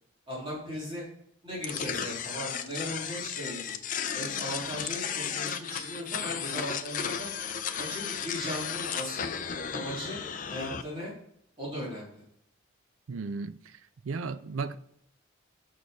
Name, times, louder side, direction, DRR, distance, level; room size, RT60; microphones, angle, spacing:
voice 1, 0.3-1.0 1.4-3.8 4.1-7.3 7.8-9.4 9.7-10.2 10.5-11.1 11.6-12.2, equal, 25° right, 3.0 m, -37 dB
sound 1, 1.6-10.8, left 7 dB, 40° left, 0.5 m, -34 dB
voice 2, 13.1-13.8 14.0-14.7, right 4 dB, 80° right, 0.5 m, -35 dB
6.4 x 6.4 x 4.1 m
head